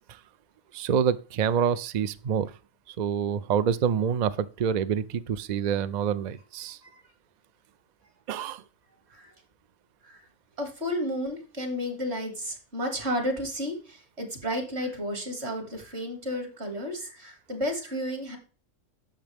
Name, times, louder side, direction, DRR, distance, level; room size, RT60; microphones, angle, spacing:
voice 1, 0.7-2.5 3.0-6.8 8.3-8.6, right 7 dB, 90° right, 0.3 m, -27 dB
voice 2, 10.6-18.4, equal, 50° right, 2.7 m, -32 dB
11.5 x 7.6 x 3.5 m
omnidirectional pair, 1.4 m